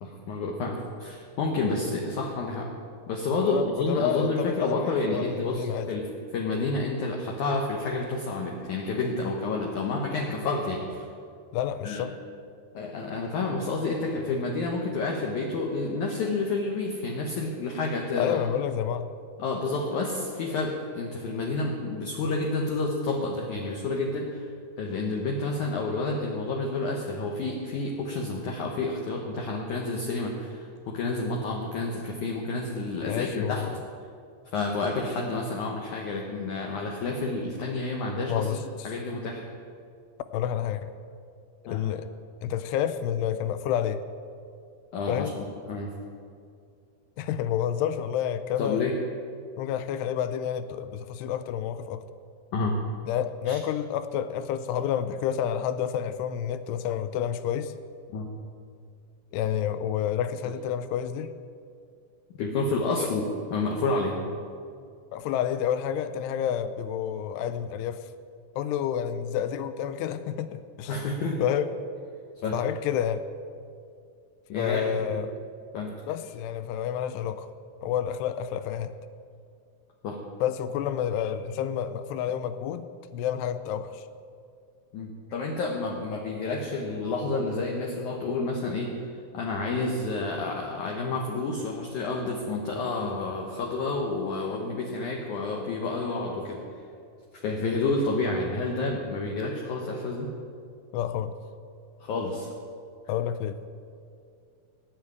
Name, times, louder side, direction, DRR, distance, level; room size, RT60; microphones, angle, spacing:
voice 1, 0.0-2.7 3.1-11.0 11.8-12.0 12.7-18.4 19.4-24.5 24.8-33.6 34.5-38.6 38.8-39.4 41.7-41.8 44.9-45.9 48.6-49.0 52.5-52.8 53.5-53.6 58.1-58.3 60.4-60.5 62.4-63.3 63.5-64.2 70.9-71.5 72.4-72.6 74.5-75.2 75.7-76.0 80.0-80.2 84.9-88.9 89.3-96.6 97.4-100.3 102.0-102.5, left 3 dB, 65° left, 0 dB, 2.1 m, -29 dB
voice 2, 3.4-5.9 11.5-12.1 18.2-19.1 33.0-33.8 38.3-38.9 40.3-40.9 41.6-42.1 42.4-44.0 45.1-45.3 47.2-48.8 49.6-52.0 53.1-57.7 59.3-61.3 63.0-63.1 65.1-68.1 68.6-71.0 71.4-71.7 72.5-73.3 74.6-75.3 76.1-77.5 77.8-78.9 80.4-82.9 83.1-84.1 100.9-101.4 103.1-103.6, left 9 dB, 90° left, 12 dB, 2.7 m, -29 dB
17.5 x 6.6 x 9.6 m, 2.3 s
omnidirectional pair, 4.7 m